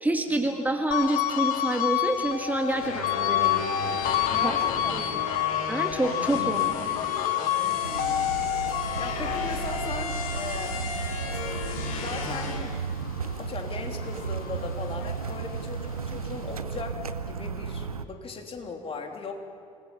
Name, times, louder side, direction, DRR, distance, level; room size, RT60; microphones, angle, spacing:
voice 1, 0.0-3.7 4.3-4.5 4.9-5.0 5.7-6.8, right 1 dB, 10° right, 4 dB, 1.7 m, -28 dB
sound 1, 0.9-13.5 13.9-15.6, left 11 dB, 50° left, 1.5 m, -29 dB
sound 2, 2.7-12.6, left 4 dB, 70° left, 5.1 m, -35 dB
voice 2, 4.3-5.4 7.6-10.9 11.3-11.6 11.9-12.9 13.2-19.4, left 4 dB, 30° left, 3 dB, 3.2 m, -38 dB
sound 3, 7.8-18.0, right 5 dB, 85° right, 0.8 m, -34 dB
26.5 x 19.5 x 7.2 m, 2.4 s
figure-of-eight pair, 65°, 18 cm